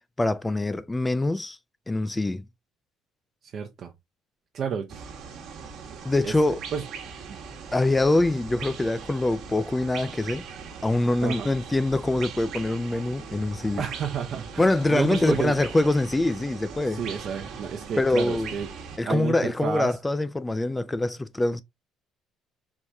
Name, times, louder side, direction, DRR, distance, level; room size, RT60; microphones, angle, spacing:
voice 1, 0.2-1.6 1.9-2.4 6.0-6.6 7.7-10.4 10.8-13.9 14.6-17.0 18.0-18.5 19.0-21.6, left 2 dB, 10° left, 0.3 m, -24 dB
voice 2, 3.5-3.9 4.5-5.0 6.2-6.3 6.7-6.8 11.2-11.5 13.8-15.6 16.9-18.7 19.0-20.0, right 7 dB, 45° right, 0.6 m, -30 dB
sound 1, 4.9-19.0, right 6 dB, 65° right, 1.3 m, -40 dB
4.6 x 3.5 x 2.6 m
cardioid pair, 150°, 0 cm